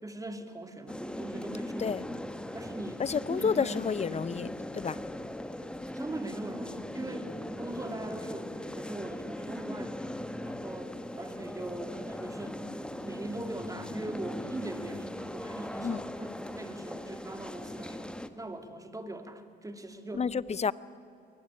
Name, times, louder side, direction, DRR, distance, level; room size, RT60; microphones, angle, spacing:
voice 1, 0.0-2.0 2.5-4.4 5.6-7.3 7.6-10.1 10.4-12.7 13.0-20.3, right 1 dB, 15° right, 7 dB, 2.5 m, -41 dB
sound 1, 0.9-18.3, left 1 dB, 5° left, 1.3 m, -39 dB
voice 2, 3.0-5.0 15.8-16.0 20.1-20.7, left 6 dB, 35° left, 19 dB, 0.7 m, -30 dB
23.0 x 20.5 x 9.9 m, 2.5 s
cardioid pair, 90°, 20 cm